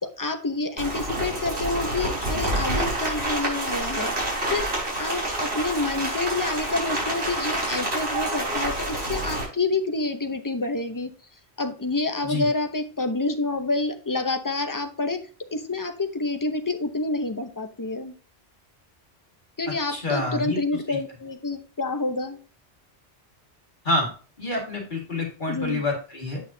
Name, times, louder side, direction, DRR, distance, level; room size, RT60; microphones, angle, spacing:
voice 1, 0.0-4.1 4.5-4.7 5.0-11.1 11.6-15.2 15.5-18.1 19.6-22.4 25.5-25.8, left 3 dB, 20° left, 6 dB, 0.7 m, -28 dB
Rain, 0.8-9.4, right 1 dB, 75° right, 4.8 m, -28 dB
voice 2, 19.7-20.6 20.9-21.0 23.8-24.1 24.4-26.4, left 2 dB, 50° left, -1 dB, 2.1 m, -27 dB
8.2 x 6.3 x 2.7 m, 0.38 s
omnidirectional pair, 1.1 m